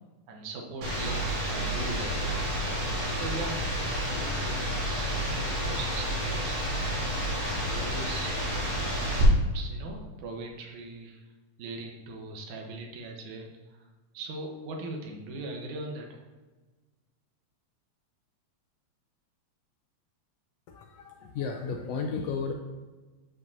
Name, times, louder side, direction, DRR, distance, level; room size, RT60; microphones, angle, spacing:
voice 1, 0.3-2.4 3.1-6.6 7.3-11.3 11.6-13.9 14.1-16.2, right 2 dB, 85° right, 1 dB, 2.4 m, -40 dB
sound 1, 0.8-9.2, equal, 70° right, 3.7 m, -30 dB
voice 2, 20.7-22.5, left 5 dB, 75° left, 3 dB, 1.5 m, -33 dB
12.5 x 5.6 x 2.7 m, 1.2 s
omnidirectional pair, 3.3 m